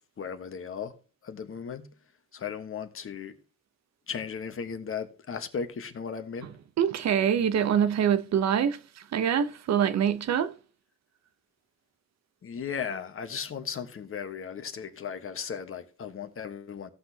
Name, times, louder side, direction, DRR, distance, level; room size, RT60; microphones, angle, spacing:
voice 1, 0.2-0.9 1.2-1.9 2.3-3.3 4.1-6.5 12.4-16.9, left 6 dB, 45° left, 1.3 m, -36 dB
voice 2, 6.8-8.8 9.1-10.5, right 8 dB, 60° right, 0.8 m, -24 dB
17.5 x 6.0 x 2.8 m
cardioid pair, 90°, 30 cm